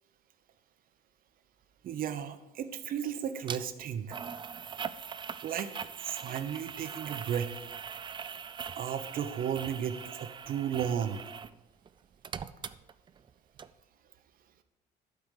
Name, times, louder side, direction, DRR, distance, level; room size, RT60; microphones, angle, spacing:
voice 1, 1.8-4.2 5.4-7.5 8.8-11.2, right 8 dB, 55° right, 9 dB, 0.9 m, -34 dB
sound 1, 3.5-3.6 4.1-11.6 11.9-13.3 13.6-13.7, right 7 dB, 30° right, 0.4 m, -41 dB
12.0 x 4.7 x 6.6 m, 1.0 s
cardioid pair, 110°, 17 cm